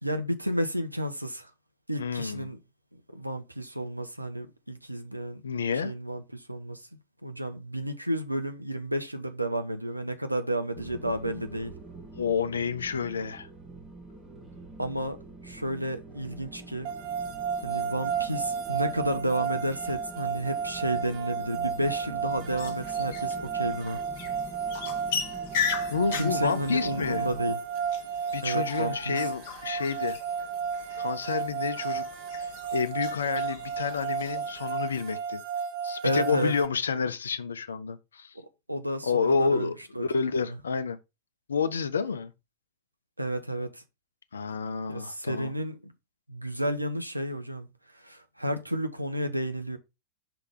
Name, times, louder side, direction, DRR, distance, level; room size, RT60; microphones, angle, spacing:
voice 1, 0.0-1.5 1.9-2.6 3.1-5.4 5.8-6.8 7.2-11.7 14.8-15.2 15.4-16.9 17.6-24.0 26.1-27.6 28.4-29.2 36.0-36.5 38.7-40.0 40.5-40.6 43.2-43.8 44.9-45.9 46.3-47.7 47.9-49.8, right 1 dB, 85° right, 0.8 m, -31 dB
voice 2, 2.0-2.5 5.4-5.9 12.1-13.5 25.9-27.3 28.3-30.2 31.0-32.1 32.4-35.4 35.8-38.3 39.0-41.0 41.5-42.3 44.3-45.5, left 5 dB, 70° left, 0.6 m, -29 dB
sound 1, 10.7-27.6, right 2 dB, 15° right, 1.3 m, -46 dB
sound 2, 16.8-36.7, right 7 dB, 45° right, 0.8 m, -33 dB
sound 3, 22.5-34.8, left 7 dB, 50° left, 1.2 m, -38 dB
5.9 x 3.4 x 4.9 m
figure-of-eight pair, 90°, 0 cm